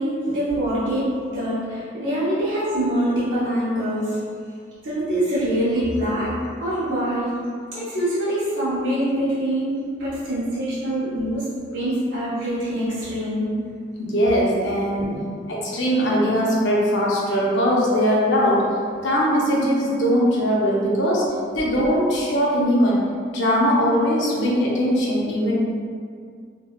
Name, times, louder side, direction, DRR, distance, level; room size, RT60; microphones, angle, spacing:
voice 1, 0.0-4.2 4.8-7.4 7.7-13.6 15.0-15.2, right 1 dB, 75° right, -11 dB, 0.7 m, -24 dB
voice 2, 14.0-15.1 15.5-18.7 19.0-23.0 23.3-25.6, equal, 70° left, -5 dB, 0.5 m, -20 dB
3.5 x 2.2 x 2.2 m, 2.1 s
head